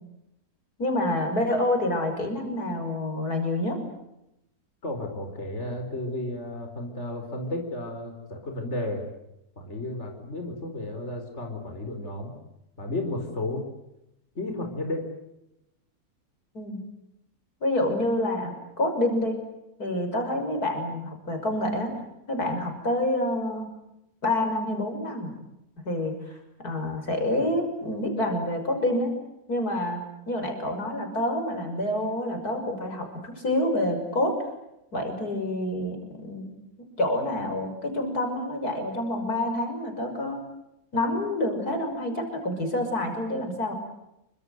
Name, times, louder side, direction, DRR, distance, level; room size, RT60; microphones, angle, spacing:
voice 1, 0.8-3.8 16.5-16.8 17.6-19.4 19.8-21.9 22.3-23.7 24.2-25.3 25.8-26.3 26.6-29.1 29.5-30.0 30.3-34.4 34.9-36.5 37.0-40.4 40.9-43.7, left 1 dB, 85° left, 5 dB, 6.6 m, -27 dB
voice 2, 4.8-9.1 9.6-12.3 12.8-13.6 14.3-15.1, left 1 dB, 45° left, 3 dB, 4.9 m, -33 dB
29.0 x 25.0 x 8.0 m, 0.86 s
omnidirectional pair, 1.6 m